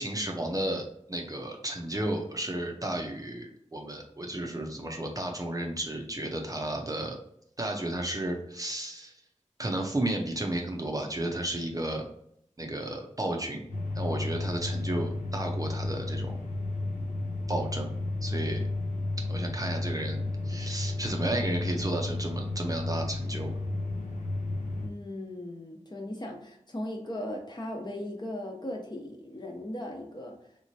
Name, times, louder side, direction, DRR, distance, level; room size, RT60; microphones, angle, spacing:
voice 1, 0.0-7.2 7.6-9.1 9.6-12.1 12.6-13.7 14.0-16.3 17.5-17.9 18.2-18.6 19.3-23.5, right 1 dB, 30° right, 1 dB, 0.6 m, -33 dB
sound 1, 13.7-24.9, left 2 dB, 90° left, 0.7 m, -32 dB
voice 2, 24.8-30.4, left 1 dB, 35° left, 1 dB, 0.9 m, -38 dB
3.3 x 3.0 x 2.7 m, 0.69 s
wide cardioid pair, 60°, 13 cm